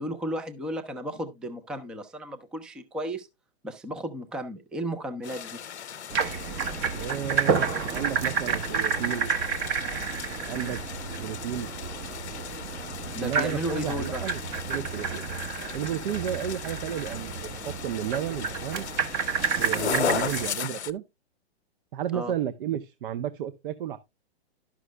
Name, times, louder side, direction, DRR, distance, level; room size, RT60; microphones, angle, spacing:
voice 1, 0.0-3.3 3.6-5.6 10.5-10.8 13.1-14.3 22.1-22.3, equal, 5° right, 0.4 m, -34 dB
sound 1, 5.2-20.9, left 8 dB, 85° left, 0.8 m, -37 dB
sound 2, 6.1-20.5, right 6 dB, 35° right, 1.2 m, -30 dB
voice 2, 6.9-9.3 10.4-10.8 11.1-11.7 13.2-14.4 14.7-15.2 15.7-18.9 19.6-21.0 21.9-24.0, right 10 dB, 55° right, 0.7 m, -32 dB
11.5 x 6.1 x 3.2 m
hypercardioid pair, 130°, 33 cm